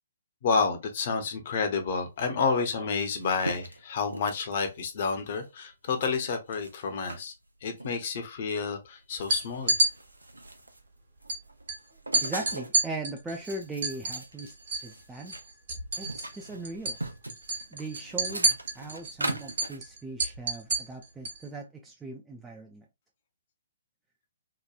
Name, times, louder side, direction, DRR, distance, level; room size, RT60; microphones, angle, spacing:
voice 1, 0.4-7.3 7.6-9.7, left 5 dB, 45° left, 0.7 m, -29 dB
sound 1, 2.5-2.6 2.8-4.8 5.3-5.5 6.0-7.2 7.8-8.0 8.6-8.7 9.0-10.9 11.2-12.8 13.2-15.4 15.7-19.8, right 2 dB, 85° right, 0.5 m, -40 dB
sound 2, 9.2-9.9 11.3-11.4 11.7-11.8 12.1-14.9 15.2-16.4 16.6-17.0 17.3-21.4, right 2 dB, 50° right, 1.0 m, -28 dB
voice 2, 12.2-14.5 14.8-15.3 16.0-17.0 17.7-22.8, right 2 dB, 10° right, 0.3 m, -39 dB
2.9 x 2.2 x 2.3 m
figure-of-eight pair, 130°, 0 cm